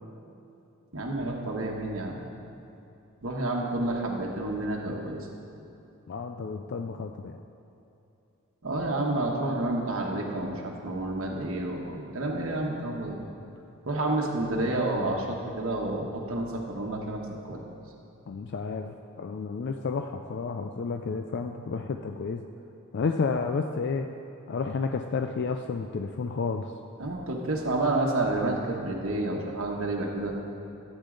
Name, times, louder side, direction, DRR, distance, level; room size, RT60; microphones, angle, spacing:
voice 1, 0.9-2.2 3.2-5.2 8.6-13.2 13.8-17.2 17.5-17.6 27.0-30.3, right 2 dB, 65° right, -1 dB, 1.2 m, -29 dB
voice 2, 6.1-7.4 18.3-22.4 22.9-24.1 24.5-26.7, left 4 dB, 50° left, 6 dB, 0.4 m, -31 dB
13.5 x 8.3 x 3.8 m, 2.8 s
head